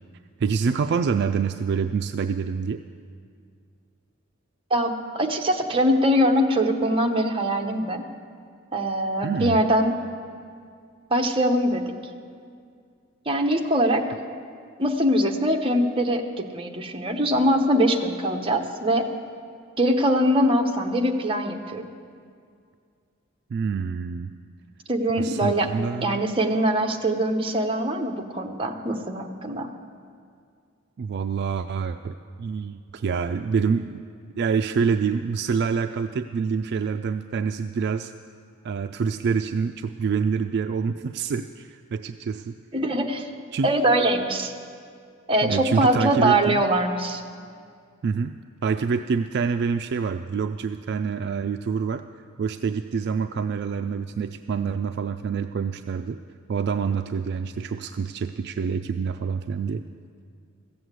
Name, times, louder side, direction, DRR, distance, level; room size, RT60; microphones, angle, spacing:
voice 1, 0.4-2.8 9.2-9.6 23.5-24.3 25.2-26.2 31.0-34.0 34.4-38.1 38.6-42.6 43.5-43.7 45.4-46.6 48.0-48.3 48.6-52.0 52.4-56.2 56.5-59.8, right 5 dB, 55° right, 8 dB, 0.3 m, -26 dB
voice 2, 4.7-8.1 8.7-9.9 11.1-11.9 13.3-14.0 14.8-19.1 19.8-21.9 24.9-25.7 26.0-29.7 42.7-43.3 43.6-44.5 45.3-47.2, right 1 dB, 25° right, 3 dB, 0.9 m, -22 dB
14.5 x 7.8 x 8.1 m, 2.2 s
head